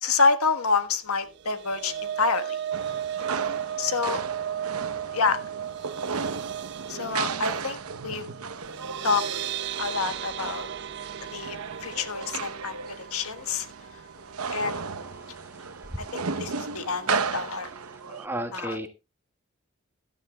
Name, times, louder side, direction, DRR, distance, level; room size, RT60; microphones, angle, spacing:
voice 1, 0.0-2.6 3.8-4.2 5.1-5.4 6.9-8.2 9.0-9.2 9.8-10.7 11.3-12.8 13.1-13.7 14.5-14.8 16.0-17.7 18.5-18.9, left 4 dB, 80° left, 9 dB, 1.5 m, -27 dB
sound 1, 1.3-15.5 15.8-16.1 16.4-16.5, right 10 dB, 50° right, 0.5 m, -36 dB
sound 2, 2.7-18.3, right 5 dB, 85° right, 0.9 m, -35 dB
voice 2, 15.2-15.6 17.9-18.9, right 1 dB, 10° right, 5 dB, 1.6 m, -35 dB
17.0 x 12.0 x 2.3 m, 0.26 s
head